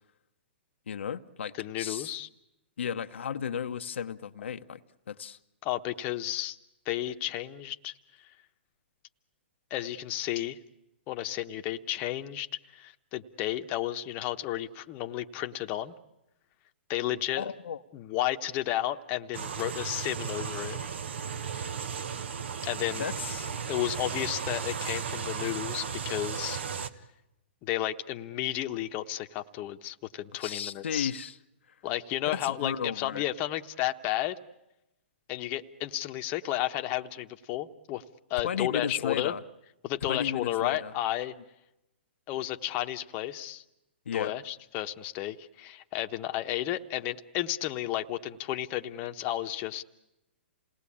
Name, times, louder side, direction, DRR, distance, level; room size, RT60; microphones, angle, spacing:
voice 1, 0.9-2.1 2.8-4.8 5.1-5.4 17.4-17.8 23.0-23.5 30.4-31.4 32.3-33.2 38.4-39.4 40.1-40.9 44.1-44.3, left 7 dB, 80° left, 0.8 m, -34 dB
voice 2, 1.6-2.3 5.6-6.6 6.9-8.3 9.7-10.6 11.1-12.5 12.7-15.9 16.9-17.5 17.9-20.9 21.5-21.7 22.6-23.1 23.7-26.6 27.6-31.1 31.8-34.4 35.3-38.0 38.3-39.3 39.8-41.3 42.3-43.6 44.1-49.8, left 14 dB, 30° left, 1.0 m, -32 dB
sound 1, 19.3-26.9, right 6 dB, 70° right, 1.2 m, -35 dB
28.0 x 19.0 x 8.6 m
hypercardioid pair, 140°, 6 cm